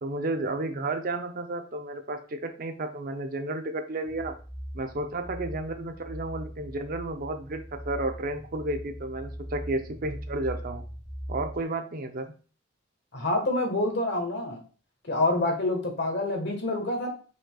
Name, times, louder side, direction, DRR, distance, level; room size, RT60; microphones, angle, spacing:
voice 1, 0.0-4.3 4.7-10.8 11.3-12.3, right 2 dB, 50° right, 6 dB, 0.6 m, -32 dB
sound 1, 4.0-11.6, equal, 5° right, 0.8 m, -40 dB
voice 2, 13.1-14.6 15.1-17.1, left 2 dB, 60° left, 2 dB, 1.4 m, -27 dB
5.1 x 3.9 x 2.3 m, 0.37 s
head